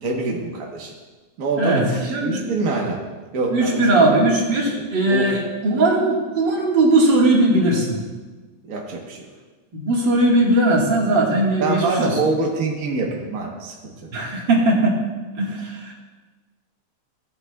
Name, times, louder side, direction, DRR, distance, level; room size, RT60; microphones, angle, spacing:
voice 1, 0.0-0.9 1.4-1.8 2.2-3.0 3.3-3.9 5.1-5.3 8.7-9.2 11.6-13.9, right 3 dB, 60° right, -1 dB, 0.9 m, -24 dB
voice 2, 2.1-2.4 3.5-8.0 9.7-12.1 14.1-15.0 15.4-15.9, right 2 dB, 45° right, -3 dB, 2.1 m, -19 dB
15.5 x 9.7 x 2.3 m, 1.3 s
omnidirectional pair, 3.4 m